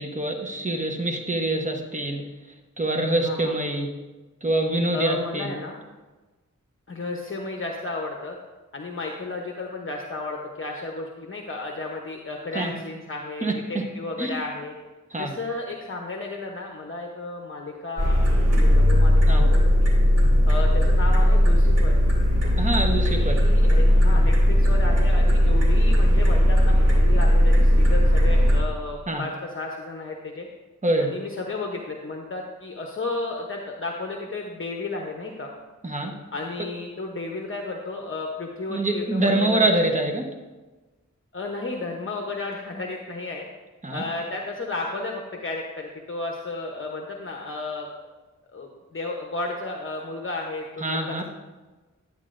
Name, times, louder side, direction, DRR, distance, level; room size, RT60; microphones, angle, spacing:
voice 1, 0.0-2.2 2.8-3.9 4.4-5.5 12.5-12.7 13.4-13.8 14.2-14.4 15.1-15.3 19.3-19.4 22.6-23.4 29.1-29.2 30.8-31.1 35.8-36.1 38.7-40.3 43.8-44.0 50.8-51.2, right 2 dB, 25° right, 3 dB, 1.0 m, -25 dB
voice 2, 3.2-3.5 4.9-5.8 6.9-8.4 8.7-14.8 15.2-18.2 18.5-19.9 20.5-22.0 23.1-30.5 31.0-35.5 36.3-39.7 41.3-43.5 43.9-47.9 48.5-51.2, left 3 dB, 40° left, 1 dB, 0.9 m, -33 dB
sound 1, 18.0-28.6, equal, 50° right, 2.5 m, -18 dB
10.5 x 9.0 x 2.5 m, 1.2 s
wide cardioid pair, 85°, 32 cm